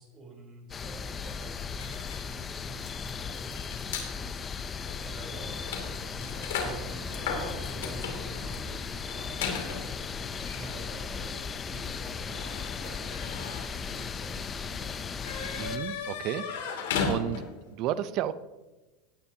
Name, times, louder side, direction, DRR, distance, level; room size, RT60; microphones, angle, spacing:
voice 1, 0.0-4.2 5.0-5.6 6.1-12.5 12.8-15.1, right 2 dB, 30° right, 1 dB, 3.7 m, -47 dB
sound 1, 0.7-15.8, left 6 dB, 25° left, 0.6 m, -37 dB
sound 2, 1.8-4.1 4.8-5.0 5.2-17.7, left 5 dB, 90° left, 2.8 m, -37 dB
sound 3, 5.3-10.4, right 1 dB, 10° right, 2.9 m, -46 dB
voice 2, 15.6-16.7 17.1-17.4 17.7-18.3, right 11 dB, 50° right, 14 dB, 0.6 m, -32 dB
17.5 x 9.9 x 2.9 m, 1.1 s
supercardioid pair, 135°, 0 cm